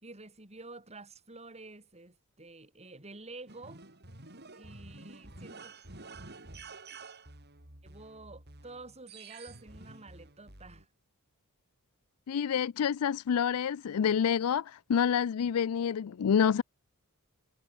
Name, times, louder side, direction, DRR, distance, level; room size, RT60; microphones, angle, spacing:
voice 1, 0.0-3.8 4.5-5.9 7.8-10.9, right 2 dB, 30° right, 4.2 m, -49 dB
sound 1, 3.5-10.8, right 3 dB, 50° right, 7.0 m, -50 dB
voice 2, 12.3-16.6, left 7 dB, 75° left, 0.4 m, -28 dB
head